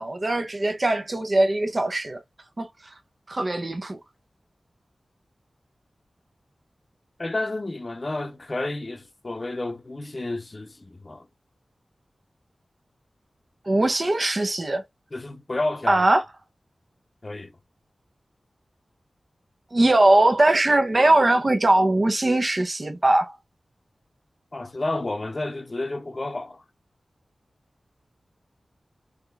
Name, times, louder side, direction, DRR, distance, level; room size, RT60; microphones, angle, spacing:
voice 1, 0.0-2.2 2.6-2.7 3.3-4.0 13.7-14.8 15.9-16.2 19.7-23.3, right 2 dB, 45° right, 0.7 m, -20 dB
voice 2, 7.2-11.3 15.1-16.0 17.2-17.5 24.5-26.6, left 2 dB, 45° left, 0.6 m, -31 dB
3.6 x 3.3 x 2.3 m
cardioid pair, 45°, 0 cm